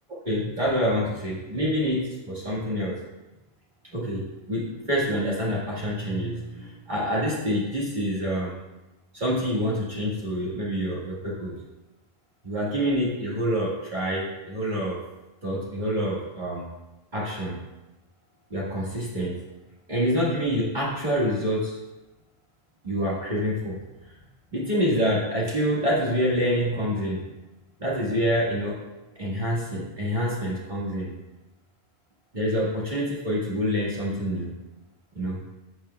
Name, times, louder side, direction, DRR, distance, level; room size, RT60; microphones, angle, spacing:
voice 1, 0.2-3.0 3.9-8.5 9.1-11.6 12.4-15.0 15.4-16.6 17.1-17.6 18.5-19.4 19.9-21.8 22.8-23.8 24.5-27.2 27.8-28.8 29.2-31.1 32.3-34.5 35.1-35.4, equal, 40° right, -7 dB, 1.8 m, -27 dB
11.0 x 7.5 x 2.3 m, 1.0 s
omnidirectional pair, 1.3 m